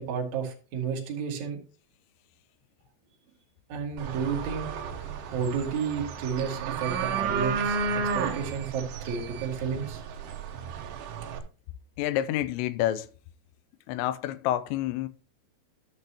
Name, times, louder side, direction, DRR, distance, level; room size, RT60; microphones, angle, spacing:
voice 1, 0.0-1.6 3.7-4.7 5.3-10.0, right 6 dB, 55° right, 2.4 m, -32 dB
sound 1, 4.0-11.4, right 5 dB, 75° right, 1.9 m, -32 dB
voice 2, 12.0-13.1 13.9-15.1, left 13 dB, 90° left, 2.8 m, -28 dB
12.5 x 6.6 x 2.8 m
omnidirectional pair, 5.0 m